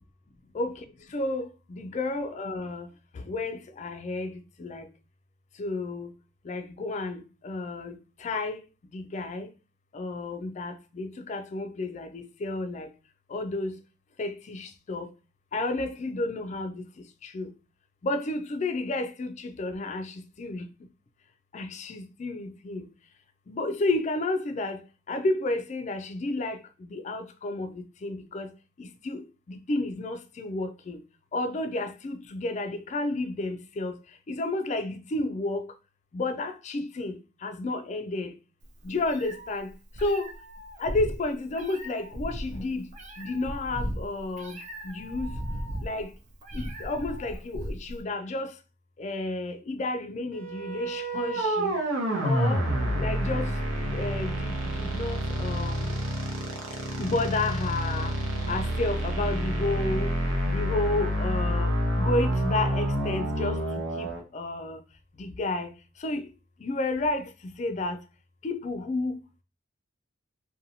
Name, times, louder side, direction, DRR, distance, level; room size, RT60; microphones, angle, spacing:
voice 1, 1.1-2.9 3.3-4.3 4.6-4.8 5.6-6.1 6.5-8.0 8.2-8.6 8.9-9.5 9.9-12.9 13.3-13.7 14.2-15.1 15.5-16.7 17.3-17.5 18.0-20.1 20.4-20.6 21.5-22.8 23.5-24.8 25.1-26.6 26.9-27.7 28.0-28.5 29.0-29.2 29.5-31.0 31.3-33.9 34.3-35.6 36.1-38.3 38.8-39.7 40.0-40.3 40.8-42.9 43.2-44.6 44.8-45.3 45.8-46.1 46.5-48.5 49.0-51.7 52.2-52.6 53.0-53.5 53.9-55.9 57.0-58.1 58.5-60.1 60.5-63.6 64.0-64.1 64.3-64.8 65.2-65.7 66.0-66.2 66.6-67.2 67.6-68.0 68.4-69.1, left 2 dB, 35° left, 0.3 m, -31 dB
Meow, 38.6-48.0, equal, 35° right, 0.4 m, -37 dB
sound 1, 50.3-64.2, equal, 80° right, 0.7 m, -28 dB
2.7 x 2.2 x 2.7 m
head